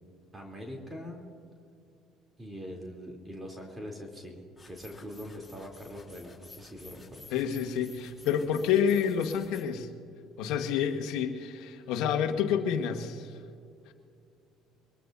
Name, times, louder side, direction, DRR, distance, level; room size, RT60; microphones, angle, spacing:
voice 1, 0.3-1.2 2.4-4.4 4.6-7.3, equal, 20° right, 0 dB, 3.2 m, -42 dB
sound 1, 4.6-9.6, left 3 dB, 10° left, 5.2 m, -53 dB
voice 2, 7.3-9.9 10.4-13.3, left 8 dB, 70° left, 7 dB, 1.4 m, -28 dB
23.5 x 21.0 x 2.7 m, 2.5 s
hypercardioid pair, 65°, 0 cm